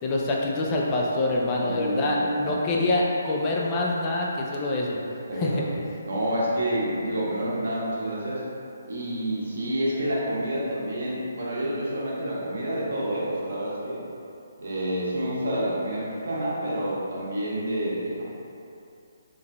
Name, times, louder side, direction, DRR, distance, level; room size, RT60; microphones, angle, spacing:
voice 1, 0.0-5.0 5.4-5.6, left 2 dB, 25° left, -3 dB, 0.4 m, -25 dB
voice 2, 1.6-2.6 5.3-5.6 6.0-8.4 8.9-14.0 14.6-18.3, right 1 dB, 65° right, -7 dB, 1.0 m, -28 dB
3.6 x 3.4 x 2.2 m, 2.6 s
figure-of-eight pair, 150°, 0 cm